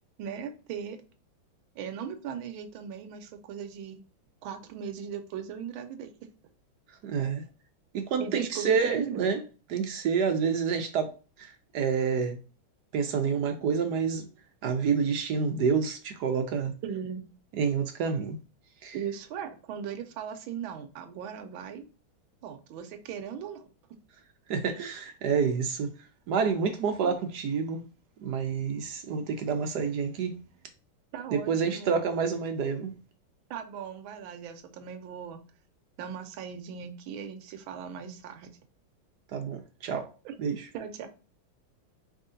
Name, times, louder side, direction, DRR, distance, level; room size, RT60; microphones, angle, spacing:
voice 1, 0.2-1.0 1.7-4.0 4.4-6.3 8.2-9.3 16.8-17.2 18.9-21.9 22.4-23.7 27.0-27.1 31.1-32.1 33.5-35.4 36.0-38.6 40.2-40.4 40.7-41.1, right 7 dB, 85° right, 1.5 m, -38 dB
voice 2, 7.0-7.4 7.9-9.4 9.7-11.1 11.4-12.4 12.9-14.3 14.6-16.7 17.6-18.4 18.8-19.0 24.5-25.9 26.3-27.8 28.2-30.4 31.3-32.9 39.3-40.1 40.4-40.7, right 6 dB, 70° right, 1.0 m, -28 dB
4.8 x 3.6 x 2.6 m
omnidirectional pair, 2.2 m